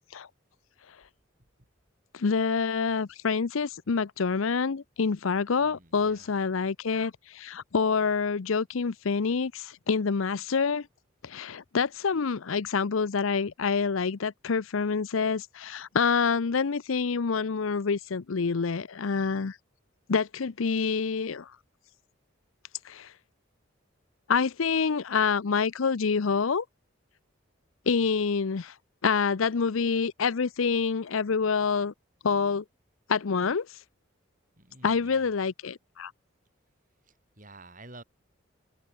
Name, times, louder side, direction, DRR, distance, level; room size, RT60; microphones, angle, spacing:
voice 1, 2.1-10.9 11.2-19.6 20.1-21.5 22.8-23.1 24.3-26.6 27.9-28.7 29.0-31.9 32.2-32.6 33.1-33.7 34.8-36.1, left 5 dB, 75° left, 0.6 m, -27 dB
voice 2, 5.6-6.3 34.6-35.3 37.0-38.0, right 2 dB, 40° right, 7.8 m, -51 dB
head